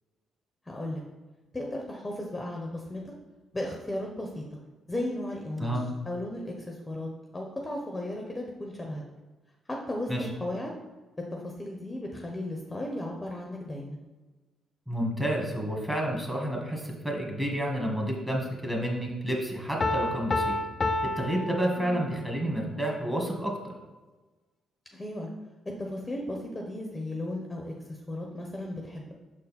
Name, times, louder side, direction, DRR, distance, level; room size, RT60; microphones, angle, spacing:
voice 1, 0.7-1.0 1.5-3.1 3.5-4.6 4.9-5.8 6.1-9.0 9.7-10.7 11.3-14.0 21.8-22.0 24.9-25.3 25.8-29.1, left 1 dB, 15° left, 0 dB, 0.9 m, -35 dB
voice 2, 14.9-20.5 21.2-23.5, right 1 dB, 10° right, 0 dB, 1.7 m, -30 dB
Piano, 19.8-22.4, left 2 dB, 35° left, 0.4 m, -30 dB
6.3 x 4.2 x 4.2 m, 1.2 s
cardioid pair, 90°, 0 cm